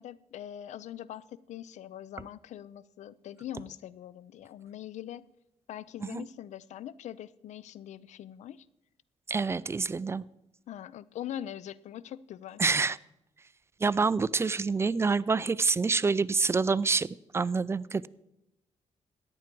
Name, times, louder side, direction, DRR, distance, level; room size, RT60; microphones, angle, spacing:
voice 1, 0.0-5.2 5.7-8.7 10.7-12.6, left 11 dB, 75° left, 19 dB, 0.5 m, -42 dB
voice 2, 9.3-10.2 12.6-13.0 13.8-17.1 17.3-18.1, right 4 dB, 20° right, 19 dB, 0.3 m, -27 dB
14.0 x 9.7 x 4.5 m, 0.88 s
cardioid pair, 100°, 12 cm